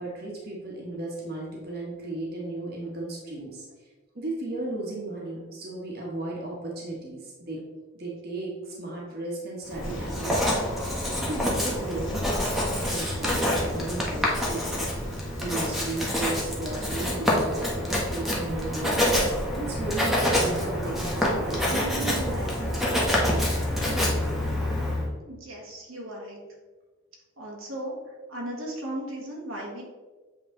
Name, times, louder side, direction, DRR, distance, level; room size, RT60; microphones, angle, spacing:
voice 1, 0.0-3.7 4.1-7.6 7.9-14.8 15.4-19.1 19.5-24.0, right 2 dB, 50° right, -3 dB, 1.2 m, -35 dB
Writing, 9.7-25.1, left 1 dB, ahead, 1.0 m, -27 dB
sound 1, 9.8-17.1, left 1 dB, 65° left, 1.1 m, -42 dB
voice 2, 25.3-26.4 27.4-27.9 28.3-29.8, right 1 dB, 80° right, -2 dB, 1.4 m, -36 dB
7.6 x 3.2 x 3.9 m, 1.3 s
head